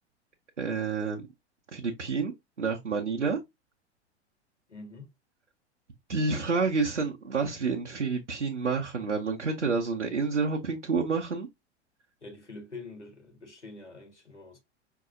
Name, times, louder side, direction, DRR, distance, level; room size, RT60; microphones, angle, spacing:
voice 1, 0.6-1.3 1.7-3.4 6.1-11.5, right 4 dB, 85° right, 0.7 m, -29 dB
voice 2, 4.7-5.1 12.2-14.6, left 3 dB, 85° left, 1.2 m, -45 dB
5.3 x 2.8 x 2.5 m
figure-of-eight pair, 90°, 35 cm